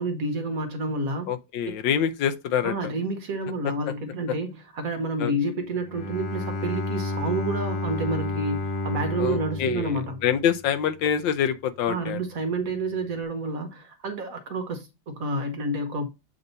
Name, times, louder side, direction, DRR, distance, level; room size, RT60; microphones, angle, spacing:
voice 1, 0.0-1.3 1.7-1.8 2.6-4.5 4.7-10.2 11.9-16.1, right 2 dB, 55° right, 1.1 m, -29 dB
voice 2, 1.3-2.7 3.9-4.0 5.2-5.3 9.2-12.2, left 9 dB, 80° left, 1.4 m, -26 dB
Bowed string instrument, 5.8-10.8, left 2 dB, 65° left, 1.3 m, -31 dB
7.9 x 2.8 x 5.4 m
omnidirectional pair, 2.0 m